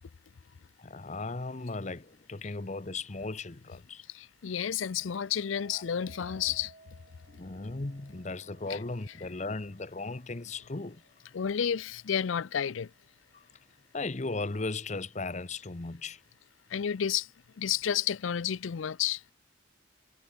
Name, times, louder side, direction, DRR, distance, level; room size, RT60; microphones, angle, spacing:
voice 1, 0.8-4.0 5.7-5.8 7.3-11.0 13.3-13.4 13.9-16.2, left 3 dB, 35° left, 0.8 m, -37 dB
voice 2, 4.1-6.7 8.7-8.8 11.3-12.9 16.7-17.3 17.6-19.2, left 8 dB, 75° left, 0.5 m, -31 dB
sound 1, 4.7-13.9 14.4-14.9, right 2 dB, 40° right, 5.3 m, -60 dB
head